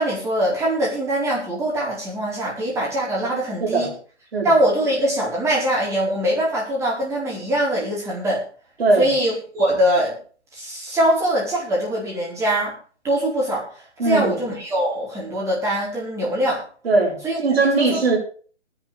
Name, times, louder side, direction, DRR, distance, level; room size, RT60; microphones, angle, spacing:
voice 1, 0.0-3.9 4.4-8.4 9.0-10.2 10.5-12.7 13.0-13.6 14.0-16.6 17.2-17.4 17.7-17.9, right 1 dB, 10° right, 4.4 m, -22 dB
voice 2, 3.6-3.9 4.3-4.6 8.8-9.1 14.0-14.3 16.8-18.2, right 3 dB, 55° right, 7.0 m, -19 dB
19.5 x 11.0 x 3.5 m
hypercardioid pair, 155°, 35 cm